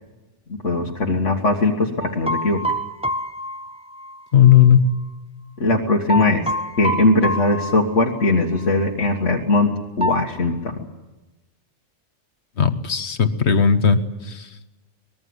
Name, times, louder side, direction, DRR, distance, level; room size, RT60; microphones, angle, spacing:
voice 1, 0.6-2.6 5.6-6.5 6.8-10.7, left 2 dB, 80° left, -1 dB, 2.1 m, -20 dB
sound 1, 2.0-4.6 6.1-8.4 8.6-8.8 10.0-10.3, equal, 5° right, 0.8 m, -27 dB
voice 2, 4.3-4.9 12.6-14.5, left 8 dB, 65° left, 10 dB, 1.5 m, -16 dB
24.5 x 20.5 x 8.0 m, 1.1 s
omnidirectional pair, 1.2 m